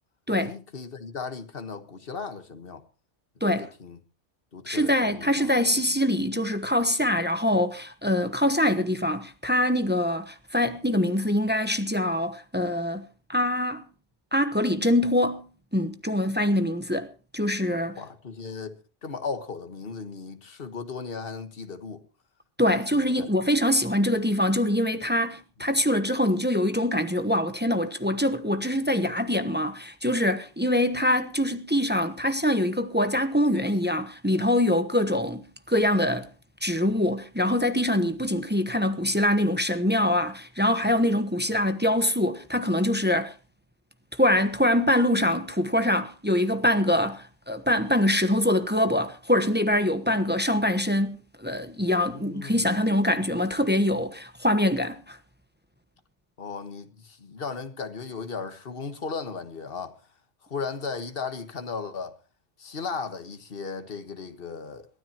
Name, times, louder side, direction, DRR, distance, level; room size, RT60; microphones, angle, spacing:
voice 1, 0.4-2.8 3.5-4.0 4.5-5.5 17.9-22.0 22.7-23.3 25.6-25.7 52.1-52.7 56.4-60.0 60.4-62.2 62.6-64.9, left 5 dB, 50° left, 1.6 m, -36 dB
voice 2, 4.7-13.0 13.3-13.8 14.3-15.5 15.7-18.0 22.6-36.3 36.6-43.3 44.1-55.2, left 1 dB, 10° right, 1.0 m, -24 dB
22.5 x 15.0 x 2.9 m
omnidirectional pair, 1.3 m